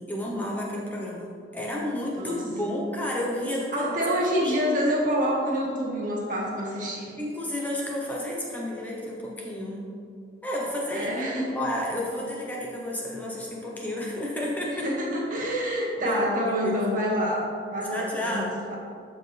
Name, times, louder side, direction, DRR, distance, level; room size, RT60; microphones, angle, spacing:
voice 1, 0.0-4.0 4.4-4.6 7.2-9.9 10.4-11.2 11.5-14.9 16.0-16.9 17.9-18.6, left 1 dB, 10° left, -3 dB, 0.8 m, -31 dB
voice 2, 3.7-7.1 10.9-11.6 14.7-18.7, equal, 45° right, -4 dB, 1.8 m, -27 dB
14.0 x 4.6 x 3.3 m, 2.3 s
head